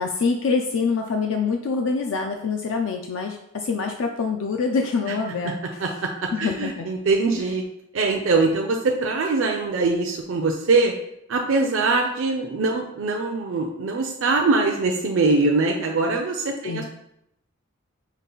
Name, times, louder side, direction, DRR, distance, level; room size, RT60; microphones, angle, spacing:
voice 1, 0.0-5.8 6.3-6.9 7.4-7.5 16.6-16.8, left 4 dB, 65° left, 3 dB, 0.4 m, -25 dB
voice 2, 5.8-7.6 7.9-10.9 11.3-16.8, right 3 dB, 70° right, 2 dB, 0.5 m, -22 dB
5.3 x 2.4 x 3.9 m, 0.78 s
head